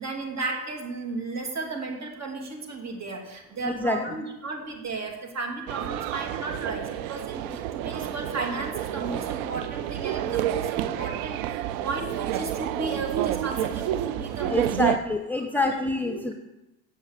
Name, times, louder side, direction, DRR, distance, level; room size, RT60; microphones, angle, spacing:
voice 1, 0.0-14.9 15.5-15.7 16.0-16.3, right 3 dB, 35° right, 2 dB, 2.7 m, -34 dB
voice 2, 3.6-4.0 14.5-16.3, left 2 dB, 5° left, 4 dB, 0.8 m, -27 dB
sound 1, 5.7-15.0, right 12 dB, 80° right, 0.7 m, -29 dB
8.2 x 6.9 x 8.2 m, 0.96 s
hypercardioid pair, 80°, 43 cm